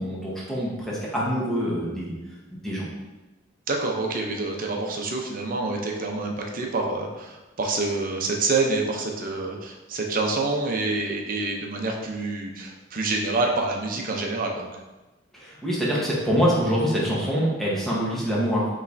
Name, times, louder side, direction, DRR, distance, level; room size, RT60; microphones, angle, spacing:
voice 1, 0.0-2.1 2.5-2.9 15.3-18.7, equal, ahead, -7 dB, 1.1 m, -25 dB
voice 2, 3.7-14.7, right 3 dB, 45° right, 1 dB, 0.6 m, -27 dB
5.3 x 3.2 x 2.6 m, 1.1 s
head